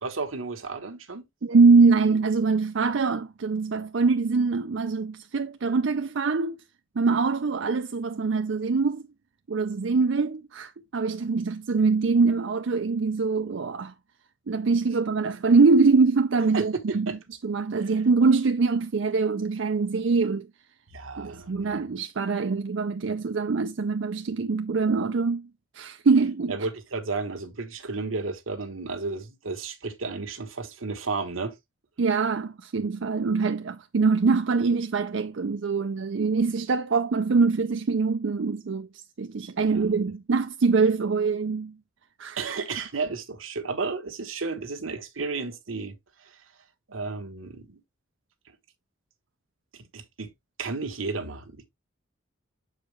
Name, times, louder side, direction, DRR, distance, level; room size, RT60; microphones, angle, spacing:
voice 1, 0.0-1.3 16.5-17.2 17.8-18.0 20.9-21.8 26.5-31.6 39.7-39.8 42.4-46.4 46.9-47.8 48.5-48.6 49.7-50.3 50.6-51.7, right 4 dB, 85° right, 1.2 m, -33 dB
voice 2, 1.4-6.6 7.0-9.0 9.5-13.9 14.5-17.1 17.4-20.5 21.2-25.5 25.7-26.5 32.0-41.7 42.2-42.4, right 4 dB, 70° right, 0.5 m, -23 dB
7.3 x 4.9 x 3.2 m
head